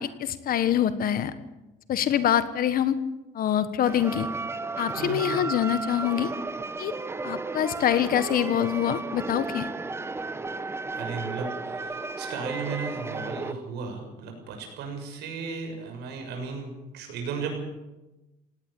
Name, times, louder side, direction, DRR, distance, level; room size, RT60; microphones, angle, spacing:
voice 1, 0.0-1.3 1.9-3.0 3.3-4.3 4.8-6.3 6.8-6.9 7.2-9.7, left 10 dB, 60° left, 12 dB, 1.4 m, -25 dB
sound 1, 3.9-13.5, right 3 dB, 15° right, 1.0 m, -34 dB
voice 2, 5.0-5.5 10.9-17.5, right 5 dB, 85° right, 3 dB, 6.7 m, -35 dB
18.5 x 17.5 x 8.5 m, 1.0 s
cardioid pair, 110°, 17 cm